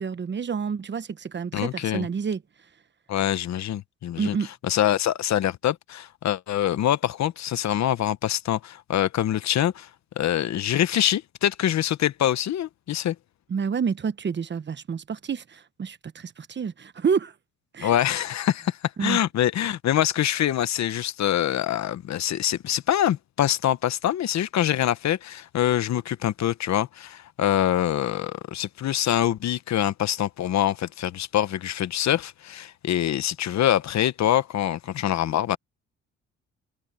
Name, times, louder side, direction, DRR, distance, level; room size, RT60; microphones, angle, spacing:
voice 1, 0.0-2.4 4.2-4.5 13.5-17.3 17.7-17.9 19.0-19.2, right 6 dB, 35° right, 1.1 m, -28 dB
voice 2, 1.5-2.1 3.1-4.4 4.6-9.9 10.2-13.1 17.8-35.6, left 11 dB, 65° left, 1.0 m, -25 dB
cardioid pair, 90°, 30 cm